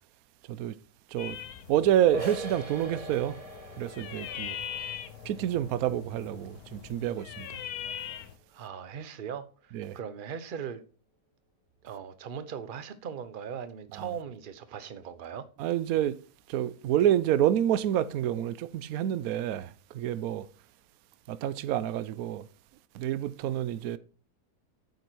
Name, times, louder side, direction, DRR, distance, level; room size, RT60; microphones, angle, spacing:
sound 1, 1.2-8.4, left 10 dB, 70° left, 1.2 m, -41 dB
voice 1, 1.7-3.4 3.8-4.6 5.2-7.5 9.7-10.0 13.9-14.0 15.6-16.2 16.5-20.5 21.3-22.5 22.9-24.0, right 11 dB, 70° right, 1.0 m, -28 dB
sound 2, 2.1-7.6, right 2 dB, 20° right, 1.4 m, -42 dB
voice 2, 8.5-10.8 11.8-15.5, right 7 dB, 40° right, 0.8 m, -39 dB
9.2 x 8.1 x 4.6 m
omnidirectional pair, 1.7 m